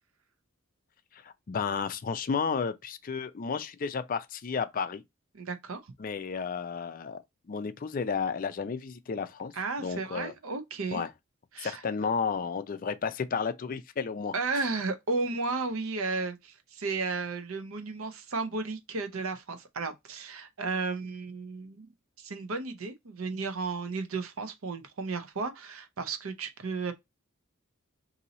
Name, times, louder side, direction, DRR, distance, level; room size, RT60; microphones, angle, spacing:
voice 1, 1.1-5.0 6.0-7.2 7.5-9.5 9.8-10.3 10.9-11.1 11.6-14.3, left 5 dB, 40° left, 0.4 m, -32 dB
voice 2, 5.3-5.9 9.5-11.0 11.5-11.8 14.3-21.9 22.2-26.9, right 3 dB, 70° right, 0.7 m, -34 dB
2.8 x 2.7 x 3.9 m
head